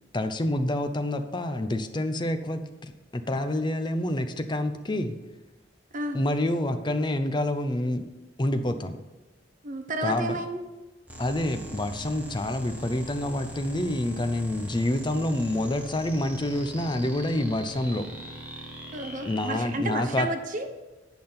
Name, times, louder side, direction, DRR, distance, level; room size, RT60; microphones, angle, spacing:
voice 1, 0.1-5.2 6.1-8.1 8.4-9.0 10.0-10.4 11.2-18.1 19.2-20.3, left 1 dB, 25° left, 8 dB, 0.6 m, -27 dB
voice 2, 9.6-10.6 18.9-20.7, right 2 dB, 45° right, 7 dB, 0.8 m, -31 dB
sound 1, 11.1-19.8, equal, 10° right, 1.5 m, -41 dB
8.7 x 6.0 x 5.5 m, 1.1 s
head